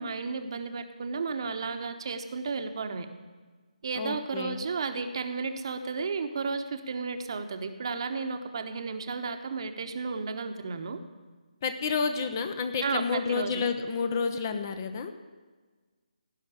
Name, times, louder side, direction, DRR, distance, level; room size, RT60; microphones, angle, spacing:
voice 1, 0.0-3.1 3.8-11.0 12.8-13.6, right 4 dB, 40° right, 7 dB, 1.1 m, -33 dB
voice 2, 3.9-4.6 11.6-15.1, left 5 dB, 25° left, 9 dB, 0.8 m, -30 dB
16.5 x 5.8 x 10.0 m, 1.4 s
figure-of-eight pair, 150°, 4 cm